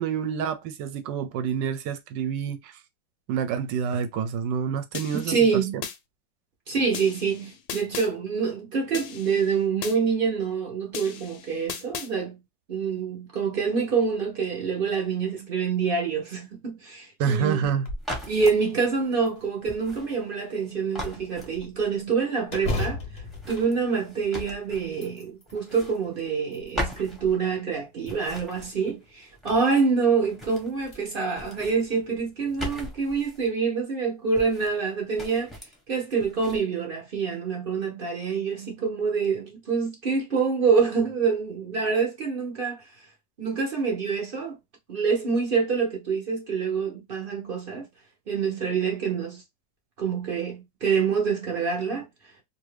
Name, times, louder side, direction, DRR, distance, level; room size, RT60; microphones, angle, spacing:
voice 1, 0.0-2.7 3.3-5.4 17.2-17.9, right 7 dB, 75° right, 1.2 m, -27 dB
sound 1, 4.9-6.0 6.9-8.1 8.9-10.0 10.9-12.1, left 8 dB, 70° left, 0.9 m, -37 dB
voice 2, 5.1-5.7 6.7-12.4 12.7-17.7 18.3-35.5 35.9-42.8 43.4-44.6 44.9-47.8 48.3-49.4 50.0-52.1, right 5 dB, 50° right, 0.6 m, -26 dB
sound 2, 17.6-18.2 18.6-18.7 19.3-20.1 22.5-24.5 24.9-25.6 26.2-27.1 28.0-28.7 30.1-30.2 30.8-31.0 31.4-31.5 32.6-32.9, left 2 dB, 45° left, 0.5 m, -35 dB
sound 3, 18.0-18.6 19.7-20.6 20.9-22.0 23.2-25.1 25.5-26.5 26.7-27.7 28.1-29.9 30.2-31.0 31.3-33.5 34.3-34.9 35.2-35.8 36.2-36.6, equal, ahead, 0.6 m, -39 dB
2.8 x 2.7 x 3.2 m
omnidirectional pair, 2.0 m